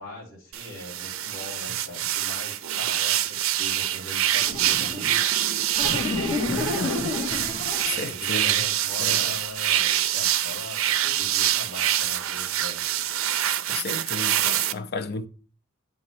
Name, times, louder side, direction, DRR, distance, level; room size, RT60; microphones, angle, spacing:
voice 1, 0.0-5.2 5.8-7.2 7.9-12.8, left 1 dB, 65° left, 3.9 m, -41 dB
sound 1, 0.5-14.7, right 12 dB, 70° right, 0.4 m, -26 dB
sound 2, 4.5-5.1 5.7-8.0, left 3 dB, 25° left, 2.0 m, -29 dB
voice 2, 7.8-8.6 9.0-9.3 13.7-15.3, left 3 dB, 50° left, 0.5 m, -33 dB
8.0 x 3.1 x 5.6 m
head